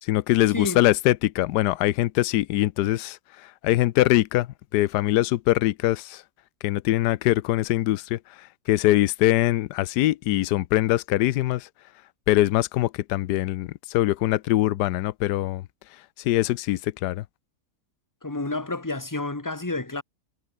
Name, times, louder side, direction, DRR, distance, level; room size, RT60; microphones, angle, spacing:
voice 1, 0.0-4.5 4.7-6.2 6.6-11.7 12.3-15.6 16.2-17.2, left 15 dB, 85° left, 1.2 m, -23 dB
voice 2, 18.2-20.0, left 2 dB, 10° left, 1.9 m, -30 dB
omnidirectional pair, 1.7 m